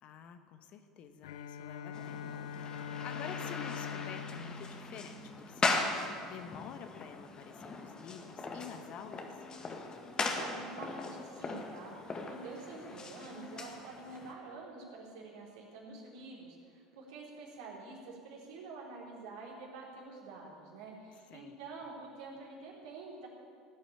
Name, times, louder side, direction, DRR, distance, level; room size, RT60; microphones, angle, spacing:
voice 1, 0.0-9.5 21.1-21.6, left 7 dB, 45° left, 8 dB, 1.2 m, -49 dB
Bowed string instrument, 1.2-5.9, left 7 dB, 65° left, 0.7 m, -43 dB
sound 1, 1.9-14.3, left 3 dB, 25° left, 1.8 m, -39 dB
voice 2, 10.2-23.3, right 3 dB, 65° right, -3 dB, 3.9 m, -47 dB
17.5 x 8.5 x 8.7 m, 2.2 s
figure-of-eight pair, 70°, 3 cm